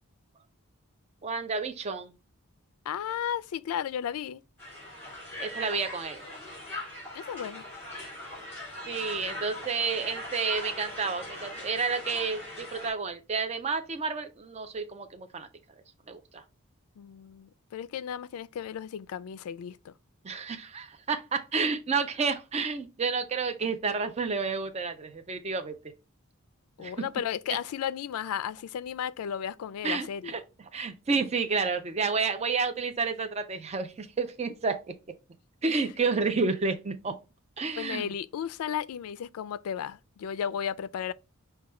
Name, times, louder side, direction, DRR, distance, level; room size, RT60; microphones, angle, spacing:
voice 1, 1.2-2.1 5.4-6.2 8.9-15.5 16.1-16.4 20.2-25.8 26.8-26.9 29.8-30.4 30.7-34.8 35.6-37.2 37.6-38.1, right 4 dB, 30° right, 0.4 m, -30 dB
voice 2, 2.9-4.4 7.1-7.6 17.0-19.9 26.8-30.3 35.7-35.8 37.8-41.1, left 8 dB, 75° left, 0.3 m, -34 dB
Crowd, 4.6-12.9, left 1 dB, 10° left, 2.2 m, -40 dB
4.7 x 2.3 x 4.2 m
head